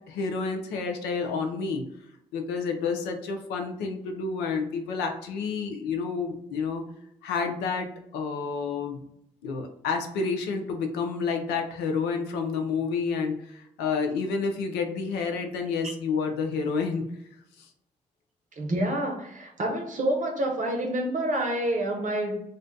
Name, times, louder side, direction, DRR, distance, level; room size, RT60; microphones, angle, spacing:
voice 1, 0.1-1.8 2.3-6.9 7.2-9.0 9.4-17.1 17.6-17.7, left 5 dB, 85° left, 4 dB, 0.5 m, -29 dB
voice 2, 18.6-22.4, right 1 dB, 50° right, 2 dB, 0.7 m, -28 dB
2.5 x 2.1 x 3.7 m, 0.78 s
hypercardioid pair, 45°, 17 cm